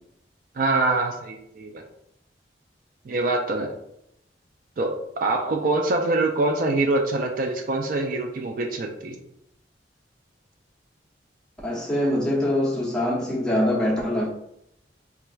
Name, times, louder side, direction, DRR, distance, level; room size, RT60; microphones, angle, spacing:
voice 1, 0.6-1.8 3.1-3.7 4.8-4.9 5.2-9.2, right 2 dB, 50° right, 2 dB, 0.4 m, -24 dB
voice 2, 11.6-14.3, left 1 dB, 5° left, -5 dB, 0.8 m, -23 dB
4.3 x 2.4 x 2.2 m, 0.77 s
head